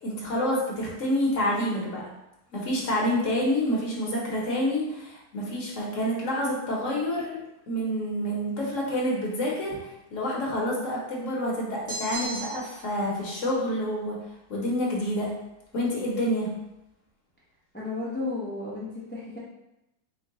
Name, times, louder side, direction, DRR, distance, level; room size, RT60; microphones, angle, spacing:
voice 1, 0.0-2.0 2.5-7.4 7.7-14.2 14.5-15.3 15.7-16.5, equal, 55° left, -4 dB, 1.1 m, -28 dB
sound 1, 11.9-12.9, right 2 dB, 40° right, 0.6 m, -35 dB
voice 2, 17.7-19.4, left 3 dB, 15° left, -7 dB, 0.3 m, -33 dB
4.6 x 2.1 x 3.6 m, 0.90 s
omnidirectional pair, 1.7 m